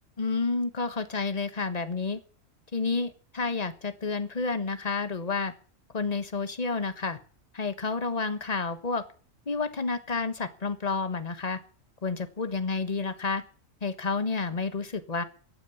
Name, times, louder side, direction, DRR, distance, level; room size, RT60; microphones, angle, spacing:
voice 1, 0.2-2.2 2.7-5.5 5.9-7.2 7.5-9.0 9.5-11.6 12.0-13.4 13.8-15.2, left 4 dB, 30° left, 12 dB, 1.4 m, -30 dB
15.5 x 9.4 x 9.6 m, 0.42 s
omnidirectional pair, 1.4 m